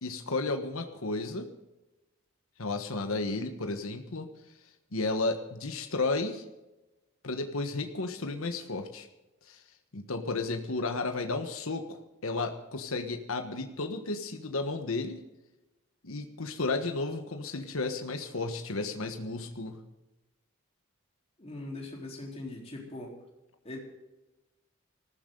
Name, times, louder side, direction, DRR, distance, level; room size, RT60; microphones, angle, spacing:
voice 1, 0.0-1.5 2.6-4.3 4.9-6.4 7.2-9.1 9.5-9.6 9.9-15.2 16.0-19.8, left 3 dB, 75° left, 6 dB, 1.3 m, -33 dB
voice 2, 21.4-23.2 23.6-23.8, left 2 dB, 30° left, -1 dB, 3.9 m, -41 dB
19.5 x 14.5 x 3.9 m, 1.0 s
head